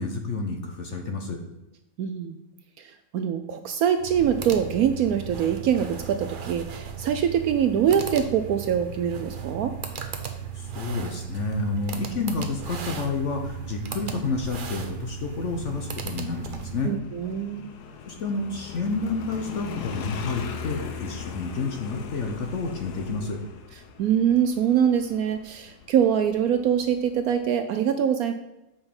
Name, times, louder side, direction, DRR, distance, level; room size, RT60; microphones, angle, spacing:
voice 1, 0.0-1.4 10.5-16.9 18.1-23.4, left 3 dB, 50° left, 3 dB, 1.0 m, -30 dB
voice 2, 2.0-2.4 2.8-9.7 16.8-17.7 24.0-28.3, right 8 dB, 70° right, 8 dB, 0.9 m, -24 dB
sound 1, 4.0-17.0, right 7 dB, 50° right, 0.6 m, -36 dB
Motorcycle, 13.1-27.4, left 6 dB, 70° left, 1.3 m, -40 dB
7.2 x 5.3 x 5.3 m, 0.94 s
omnidirectional pair, 1.9 m